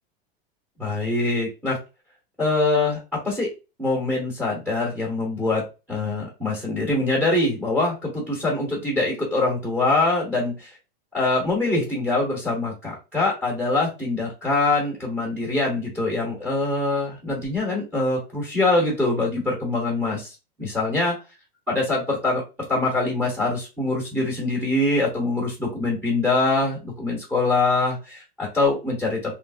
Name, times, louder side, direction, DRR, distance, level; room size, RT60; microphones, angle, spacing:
voice 1, 0.8-1.8 2.4-3.5 3.8-5.6 5.9-10.7 11.1-21.2 21.7-22.4 22.7-29.3, left 2 dB, ahead, -4 dB, 0.8 m, -24 dB
3.1 x 2.4 x 2.3 m, 0.29 s
supercardioid pair, 165°, 32 cm